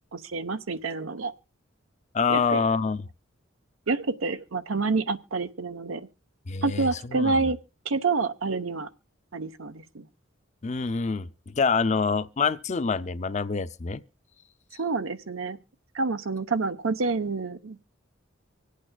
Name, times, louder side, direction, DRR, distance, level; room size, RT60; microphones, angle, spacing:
voice 1, 0.1-1.3 2.3-2.6 3.9-6.1 6.6-7.6 7.8-8.9 9.3-10.1 14.8-15.6 15.9-17.9, right 4 dB, 90° right, 0.9 m, -28 dB
voice 2, 2.1-3.0 6.5-7.5 10.6-14.0, left 5 dB, 35° left, 0.5 m, -26 dB
25.0 x 8.5 x 2.3 m
head